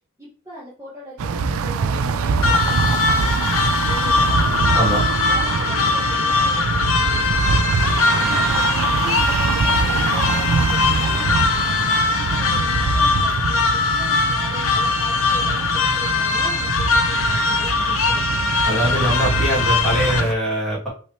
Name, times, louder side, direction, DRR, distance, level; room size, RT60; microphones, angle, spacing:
voice 1, 0.2-18.8, right 1 dB, 15° right, -7 dB, 1.1 m, -40 dB
sound 1, 1.2-20.3, right 4 dB, 75° right, 0.4 m, -24 dB
sound 2, 2.4-20.2, left 4 dB, 70° left, 0.7 m, -21 dB
voice 2, 4.7-5.1 18.6-20.9, equal, ahead, -6 dB, 1.8 m, -22 dB
5.6 x 3.1 x 3.1 m, 0.39 s
head